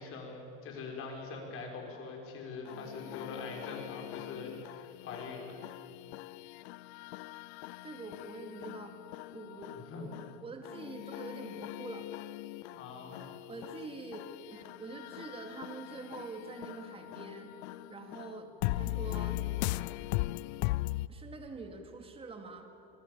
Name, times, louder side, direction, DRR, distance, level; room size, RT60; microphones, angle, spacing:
voice 1, 0.0-5.7 9.7-10.1 12.7-13.3, left 4 dB, 40° left, 1 dB, 6.4 m, -43 dB
sound 1, 2.7-21.1, left 20 dB, 70° left, 0.6 m, -40 dB
voice 2, 7.8-9.0 9.3-12.1 13.5-17.5 17.9-19.4 21.1-22.7, right 3 dB, 15° right, 4 dB, 2.8 m, -45 dB
28.0 x 21.0 x 8.7 m, 2.9 s
supercardioid pair, 145°, 34 cm